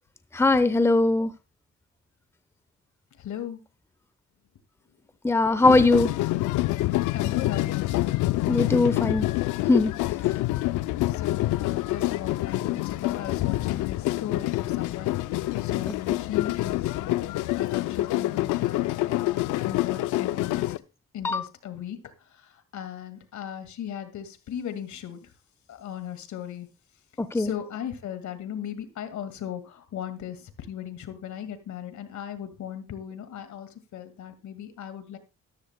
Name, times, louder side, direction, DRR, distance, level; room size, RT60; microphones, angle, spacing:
voice 1, 0.3-1.3 5.2-6.1 8.5-9.3 9.7-9.9 21.2-21.5 27.2-27.5, left 2 dB, 10° left, 12 dB, 0.8 m, -20 dB
voice 2, 3.2-3.6 7.1-7.9 11.1-15.2 15.6-17.3 17.5-19.4 19.6-20.7 21.1-22.0 22.7-25.2 25.7-26.7 27.3-35.2, left 9 dB, 70° left, 9 dB, 2.0 m, -37 dB
sound 1, 5.6-20.8, left 17 dB, 85° left, 0.5 m, -27 dB
13.5 x 13.5 x 2.2 m, 0.27 s
cardioid pair, 90°, 30 cm